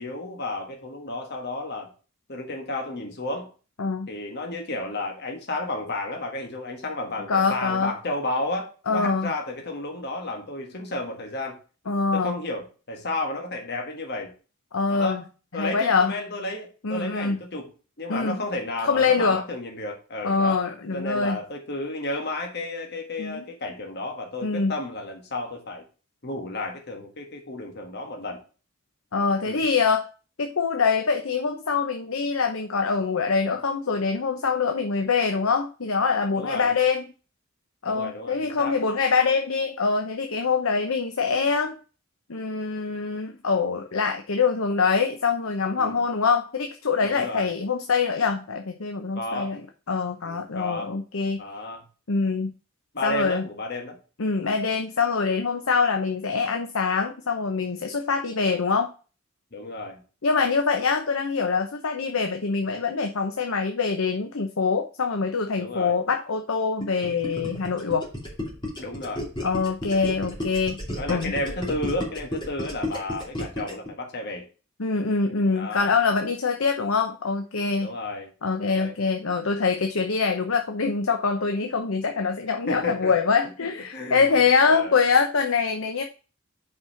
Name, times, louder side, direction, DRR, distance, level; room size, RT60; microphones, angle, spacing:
voice 1, 0.0-1.9 2.3-3.5 4.1-11.6 12.1-14.3 14.9-15.2 15.5-17.7 18.0-20.6 20.9-25.8 26.2-28.4 29.4-29.6 36.4-36.7 37.8-38.8 45.8-46.0 47.0-47.5 49.1-49.5 50.2-50.9 51.4-51.8 52.9-54.0 59.5-60.0 65.6-66.0 68.8-69.2 71.0-74.5 75.5-75.9 77.8-78.3 78.7-78.9 82.7-83.1 83.9-84.2 84.7-84.9, left 2 dB, 50° left, 2 dB, 1.5 m, -32 dB
voice 2, 7.3-7.9 8.9-9.3 11.9-12.4 14.7-15.2 15.5-16.1 16.8-17.4 18.1-18.4 18.8-19.5 20.2-21.4 23.2-23.4 24.4-24.7 29.1-30.1 30.4-37.0 37.8-41.7 42.3-49.6 49.9-51.4 52.1-52.5 53.0-53.4 54.2-58.9 60.2-68.1 69.4-70.8 71.1-71.3 74.8-77.9 78.4-86.0, left 5 dB, 75° left, 5 dB, 0.8 m, -24 dB
Gurgling, 66.8-73.9, left 1 dB, 20° left, 2.8 m, -32 dB
5.5 x 5.4 x 5.7 m, 0.35 s
head